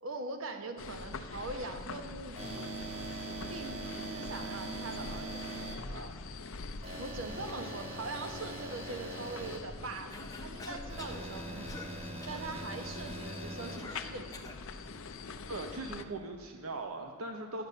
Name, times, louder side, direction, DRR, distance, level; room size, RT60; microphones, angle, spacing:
voice 1, 0.0-2.7 3.5-5.4 5.7-6.1 7.0-11.8 12.3-14.6, right 3 dB, 70° right, 6 dB, 1.1 m, -42 dB
sound 1, 0.8-16.1, left 4 dB, 70° left, 0.6 m, -44 dB
sound 2, 2.4-5.7 6.8-9.6 10.9-13.8, right 2 dB, 30° right, 1.5 m, -42 dB
Cough, 10.1-11.3 11.7-11.9 12.2-12.5 13.8-14.6, left 3 dB, 15° left, 0.9 m, -46 dB
voice 2, 15.5-17.7, right 2 dB, 85° right, 5 dB, 0.8 m, -40 dB
11.0 x 8.7 x 6.6 m, 2.1 s
head